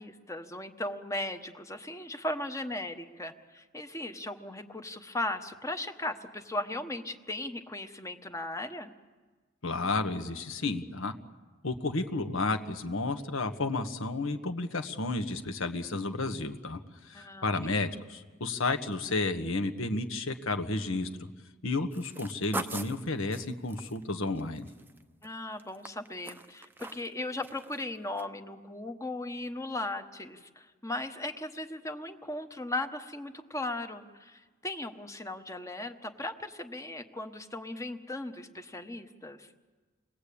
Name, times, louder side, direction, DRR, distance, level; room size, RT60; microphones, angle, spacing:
voice 1, 0.0-8.9 17.1-17.8 25.2-39.5, left 2 dB, 15° left, 7 dB, 1.1 m, -37 dB
voice 2, 9.6-11.1 11.6-21.3 21.6-24.7, left 3 dB, 75° left, 7 dB, 1.5 m, -32 dB
sound 1, 21.9-25.3 25.6-27.1 27.4-27.8 28.2-28.3, right 2 dB, 10° right, 0.7 m, -41 dB
29.0 x 21.0 x 8.5 m, 1.4 s
head